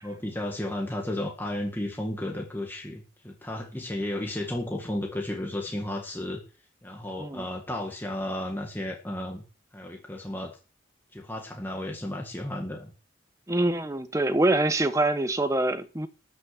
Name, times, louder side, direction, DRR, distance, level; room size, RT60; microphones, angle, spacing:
voice 1, 0.0-6.4 6.8-9.4 9.7-10.6 11.1-12.9, left 1 dB, 10° left, 1.9 m, -33 dB
voice 2, 13.5-16.1, right 2 dB, 15° right, 1.1 m, -25 dB
13.0 x 6.3 x 8.4 m
head